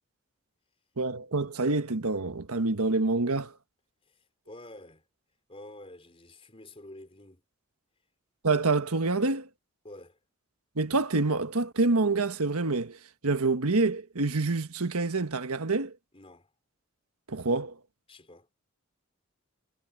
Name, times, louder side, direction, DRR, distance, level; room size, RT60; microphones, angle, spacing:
voice 1, 1.0-3.5 8.4-9.5 10.8-13.0 13.2-15.9 17.3-17.7, right 3 dB, 85° right, 1.4 m, -27 dB
voice 2, 4.0-5.0 5.5-7.4 9.8-10.2 16.1-16.5 18.1-18.5, left 1 dB, 25° left, 4.4 m, -49 dB
head